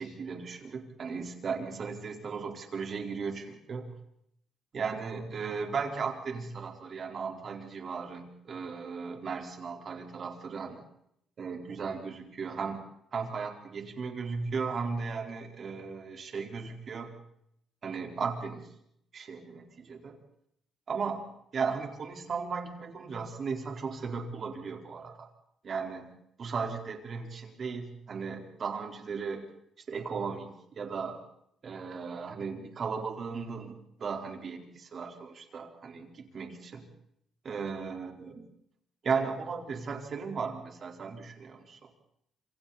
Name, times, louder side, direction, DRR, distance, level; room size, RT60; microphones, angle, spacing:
voice 1, 0.0-3.9 4.7-10.8 11.4-17.1 17.8-18.7 19.1-20.2 20.9-25.3 25.6-26.1 26.4-29.4 29.9-31.2 31.6-36.9 37.4-38.4 39.0-41.9, right 5 dB, 50° right, 3 dB, 4.4 m, -36 dB
27.5 x 27.0 x 4.3 m, 0.74 s
cardioid pair, 90°, 0 cm